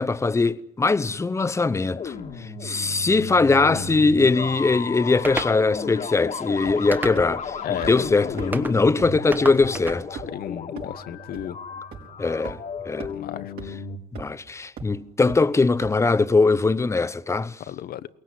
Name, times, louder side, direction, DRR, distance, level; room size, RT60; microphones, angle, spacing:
voice 1, 0.0-10.2 12.2-12.6 12.9-13.1 14.1-17.6, left 3 dB, 15° left, 0.8 m, -21 dB
sound 1, 1.9-14.0, left 5 dB, 45° left, 1.8 m, -34 dB
sound 2, 5.2-5.6 6.9-7.5 8.5-8.8 9.3-10.0, right 2 dB, 10° right, 1.1 m, -30 dB
sound 3, 6.6-6.9 7.2-7.3 7.8-7.9 8.4-8.5 9.0-9.1 9.6-9.7 10.2-10.4 10.8-10.9 11.3-11.4 11.9-12.0 12.4-12.5 13.0-13.1 13.6-13.7 14.2-14.4 14.8-14.9 15.3-15.4 15.8-15.9, right 7 dB, 70° right, 5.4 m, -36 dB
voice 2, 10.3-11.6 13.1-13.5 17.7-18.1, left 11 dB, 65° left, 1.0 m, -33 dB
22.5 x 18.0 x 9.7 m
cardioid pair, 110°, 17 cm